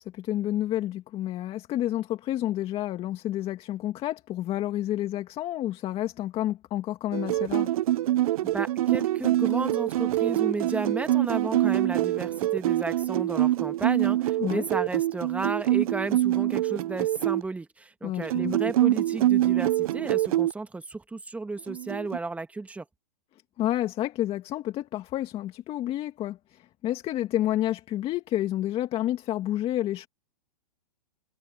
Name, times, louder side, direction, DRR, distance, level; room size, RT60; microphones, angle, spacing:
voice 1, 0.1-7.7 14.4-14.6 18.0-18.7 23.6-30.1, left 13 dB, 25° left, 2.1 m, -30 dB
sound 1, 7.1-17.4 18.2-20.5 21.7-22.2, right 14 dB, 60° right, 0.7 m, -25 dB
voice 2, 8.4-22.9, right 3 dB, 5° right, 1.9 m, -33 dB
hypercardioid pair, 130°, 21 cm